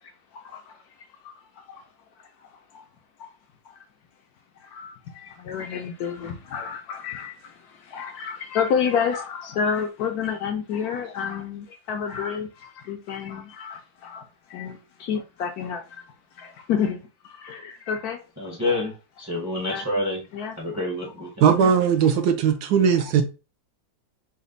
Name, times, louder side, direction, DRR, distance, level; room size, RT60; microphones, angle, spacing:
voice 1, 5.5-7.3 7.9-12.5 12.9-14.2 14.5-15.8 16.4-17.0 17.4-18.2 19.7-19.9 20.3-20.5 21.6-21.7, left 7 dB, 70° left, 0.9 m, -28 dB
voice 2, 18.4-20.2 20.6-21.6, left 1 dB, 15° right, 0.5 m, -28 dB
voice 3, 21.4-23.2, right 7 dB, 70° right, 1.0 m, -19 dB
4.1 x 2.1 x 3.8 m
omnidirectional pair, 2.1 m